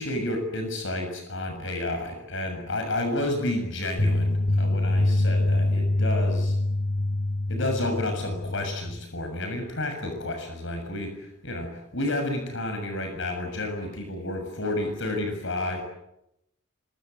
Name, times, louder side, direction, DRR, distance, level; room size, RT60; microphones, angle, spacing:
voice 1, 0.0-6.6 7.5-15.8, left 1 dB, 60° left, 5 dB, 6.9 m, -30 dB
sound 1, 4.0-9.0, left 1 dB, 45° left, 7.4 m, -25 dB
27.0 x 25.5 x 8.1 m, 0.81 s
head